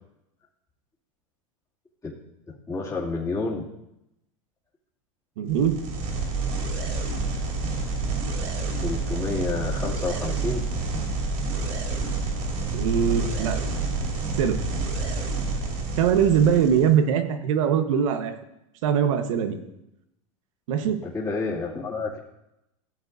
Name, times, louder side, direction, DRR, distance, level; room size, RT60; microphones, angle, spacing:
voice 1, 2.7-3.7 8.8-10.7 20.8-22.2, left 3 dB, 20° left, -7 dB, 2.6 m, -29 dB
voice 2, 5.4-5.8 12.7-13.6 14.4-14.6 16.0-18.4 18.8-19.6 20.7-21.0, right 8 dB, 70° right, 8 dB, 1.2 m, -22 dB
sound 1, 5.5-16.9, right 3 dB, 50° right, 3.2 m, -28 dB
15.5 x 8.1 x 2.7 m, 0.85 s
hypercardioid pair, 105°, 17 cm